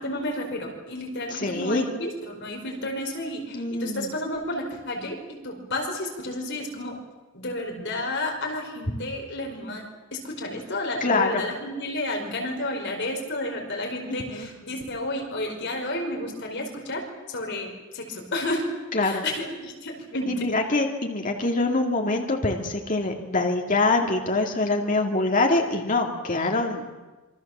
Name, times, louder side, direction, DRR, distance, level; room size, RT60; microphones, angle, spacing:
voice 1, 0.0-5.2 5.4-7.0 7.3-9.8 10.1-18.7 19.0-20.5, left 1 dB, 55° left, 2 dB, 5.1 m, -31 dB
voice 2, 1.3-1.8 3.5-4.1 11.0-11.4 14.1-14.5 18.9-19.2 20.3-26.9, left 2 dB, 40° left, 2 dB, 2.4 m, -24 dB
27.0 x 24.0 x 7.4 m, 1.2 s
head